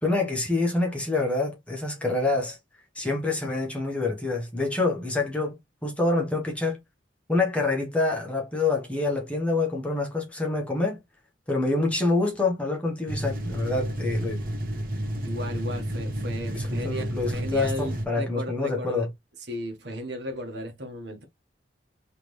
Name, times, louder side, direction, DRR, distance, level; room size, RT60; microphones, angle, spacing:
voice 1, 0.0-2.6 2.9-6.8 7.3-11.0 11.5-14.4 16.5-19.1, left 2 dB, 5° left, 1.3 m, -26 dB
sound 1, 13.1-18.1, equal, 50° right, 1.1 m, -31 dB
voice 2, 15.2-19.1 19.5-21.2, equal, 70° right, 1.4 m, -35 dB
3.6 x 3.3 x 3.2 m
head